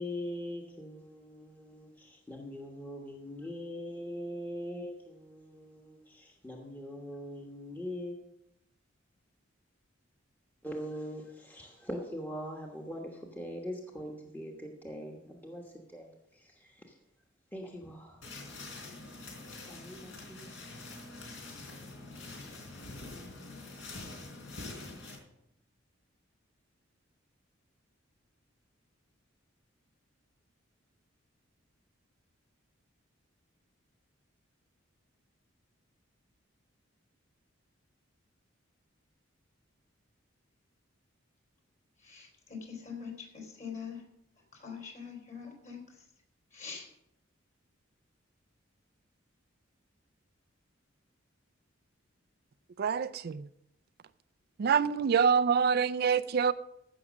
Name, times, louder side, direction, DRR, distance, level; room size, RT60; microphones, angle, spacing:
voice 1, 0.0-8.2 10.6-16.9 17.5-18.3 19.6-20.5, equal, 10° left, 1.2 m, -42 dB
sound 1, 18.2-25.2, left 2 dB, 70° left, 3.9 m, -45 dB
voice 2, 42.0-44.0 44.5-46.1 46.5-46.9, left 6 dB, 40° left, 3.5 m, -44 dB
voice 3, 52.8-53.5 54.6-56.5, right 6 dB, 50° right, 0.3 m, -26 dB
15.5 x 6.2 x 6.2 m
head